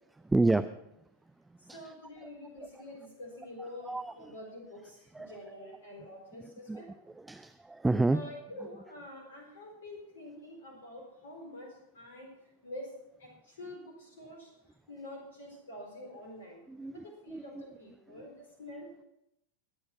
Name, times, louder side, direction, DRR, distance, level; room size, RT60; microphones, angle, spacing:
voice 1, 0.2-0.7 1.7-1.8 2.2-2.3 3.6-4.3 5.1-5.4 6.4-8.3 16.7-17.6 18.1-18.3, right 2 dB, 10° right, 11 dB, 0.5 m, -31 dB
voice 2, 1.7-6.9 8.1-12.3 12.6-12.9 13.2-14.5 14.9-16.6 16.9-18.9, left 1 dB, 65° left, 2 dB, 4.1 m, -47 dB
22.0 x 8.8 x 5.9 m, 0.82 s
figure-of-eight pair, 90°, 0 cm